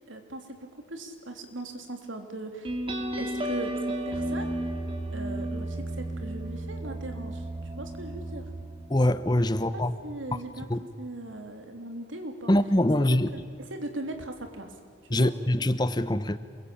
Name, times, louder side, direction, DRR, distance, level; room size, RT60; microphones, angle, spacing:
voice 1, 0.1-2.8 3.2-4.5 5.1-8.4 9.7-10.7 11.0-12.5 13.1-14.7 15.1-15.3, right 2 dB, 90° right, 5 dB, 3.3 m, -39 dB
sound 1, 2.6-9.8, right 1 dB, 30° right, 2.7 m, -33 dB
voice 2, 8.9-9.9 10.7-10.8 12.5-13.3 15.1-16.4, left 1 dB, 20° left, 13 dB, 0.9 m, -23 dB
27.5 x 22.0 x 8.7 m, 2.2 s
head